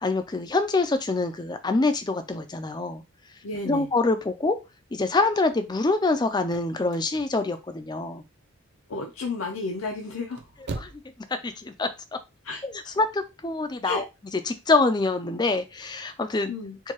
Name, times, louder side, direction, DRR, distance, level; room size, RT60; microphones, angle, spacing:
voice 1, 0.0-3.0 3.7-4.6 4.9-8.2 10.8-10.9 11.4-11.9 12.6-14.0 14.5-16.5, left 3 dB, 20° left, 9 dB, 0.4 m, -25 dB
voice 2, 3.4-3.9 8.9-10.5 12.4-12.6 13.8-14.0 16.5-16.8, left 3 dB, 70° left, 1 dB, 0.6 m, -32 dB
sound 1, 6.5-8.3 8.8-9.3 10.1-11.2 11.5-11.6, right 3 dB, 50° right, 0.5 m, -39 dB
4.5 x 2.3 x 3.0 m, 0.25 s
head